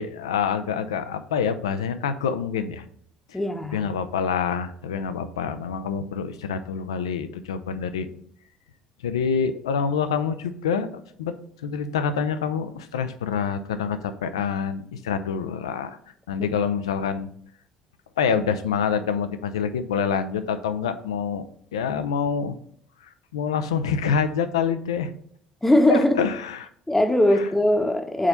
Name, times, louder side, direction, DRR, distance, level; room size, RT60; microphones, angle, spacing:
voice 1, 0.0-2.8 3.3-3.4 3.7-8.1 9.0-10.9 11.2-11.3 11.6-16.0 16.3-17.3 18.2-21.4 21.7-22.6 23.3-25.1 25.9-26.7 27.3-27.5, left 6 dB, 75° left, 0.4 m, -26 dB
voice 2, 3.3-3.8 16.4-16.5 25.6-26.2 26.9-28.3, left 1 dB, 10° left, 0.9 m, -20 dB
4.9 x 4.2 x 5.3 m
figure-of-eight pair, 60°, 3 cm